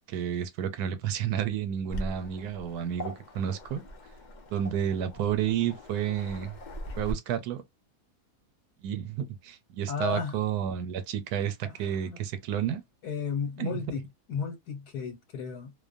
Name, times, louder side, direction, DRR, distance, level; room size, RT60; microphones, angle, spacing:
voice 1, 0.1-3.8 4.5-6.5 7.0-7.6 8.8-12.8 13.6-13.8, right 9 dB, 90° right, 1.1 m, -31 dB
Waves surf, 1.9-7.1, equal, 60° left, 0.4 m, -41 dB
voice 2, 9.9-10.4 11.7-12.2 13.0-15.7, left 6 dB, 80° left, 1.3 m, -34 dB
2.6 x 2.1 x 2.5 m
omnidirectional pair, 1.6 m